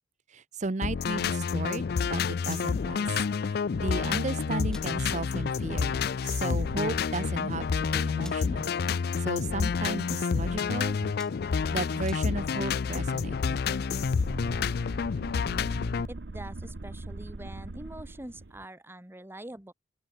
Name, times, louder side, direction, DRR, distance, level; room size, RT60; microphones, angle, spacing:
voice 1, 0.3-3.1 3.7-8.7 9.2-11.0 11.7-13.8, right 3 dB, 45° right, 0.8 m, -35 dB
sound 1, 0.8-16.1, left 5 dB, 60° left, 0.4 m, -29 dB
sound 2, 2.5-2.7 3.9-4.3 4.7-4.9 5.4-5.5 5.9-6.1 6.9-7.0 7.2-7.3 8.2-8.5 9.1-9.4 9.7-10.0 10.6-10.8 11.1-12.2, left 1 dB, 5° left, 2.3 m, -51 dB
sound 3, 13.8-18.7, right 2 dB, 65° right, 1.0 m, -41 dB
voice 2, 16.1-19.7, right 1 dB, 15° right, 1.5 m, -44 dB
open air
head